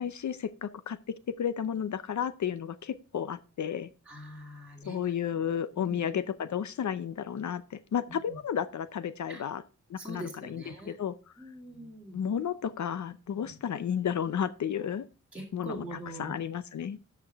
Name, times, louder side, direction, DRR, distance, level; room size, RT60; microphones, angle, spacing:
voice 1, 0.0-3.9 4.9-9.6 9.9-10.2 10.5-10.6 11.0-11.1 12.1-15.1 15.5-15.8 16.2-17.0, left 8 dB, 65° left, 14 dB, 0.6 m, -32 dB
voice 2, 4.0-5.1 5.7-6.0 8.1-8.4 9.3-9.4 10.0-11.0 11.4-12.2 13.3-13.5 14.8-15.0 15.3-16.4, right 1 dB, 5° right, -4 dB, 2.4 m, -44 dB
12.5 x 5.9 x 3.4 m, 0.35 s
wide cardioid pair, 125°, 31 cm